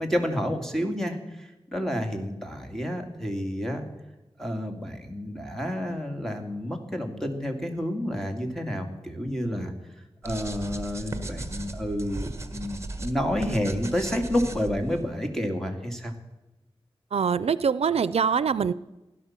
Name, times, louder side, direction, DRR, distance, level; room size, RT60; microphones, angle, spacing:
voice 1, 0.0-3.9 4.4-9.7 10.2-16.1, equal, 5° left, 4 dB, 2.4 m, -30 dB
sound 1, 10.2-15.0, right 2 dB, 30° right, 1.4 m, -36 dB
voice 2, 17.1-18.7, right 6 dB, 85° right, 17 dB, 0.4 m, -24 dB
16.5 x 11.0 x 7.4 m, 1.0 s
wide cardioid pair, 100°, 10 cm